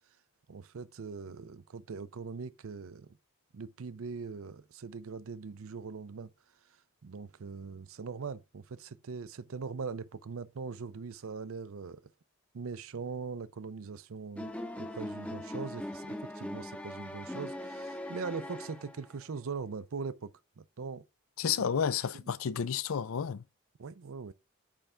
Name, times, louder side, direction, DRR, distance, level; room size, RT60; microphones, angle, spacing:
voice 1, 0.5-3.2 3.5-6.3 7.0-12.1 12.5-14.5 14.8-21.0 21.6-21.7 23.8-24.3, right 5 dB, 75° right, 0.5 m, -41 dB
sound 1, 14.4-19.2, left 1 dB, 5° left, 0.6 m, -40 dB
voice 2, 21.4-23.4, left 7 dB, 75° left, 0.4 m, -31 dB
8.6 x 3.4 x 3.7 m
head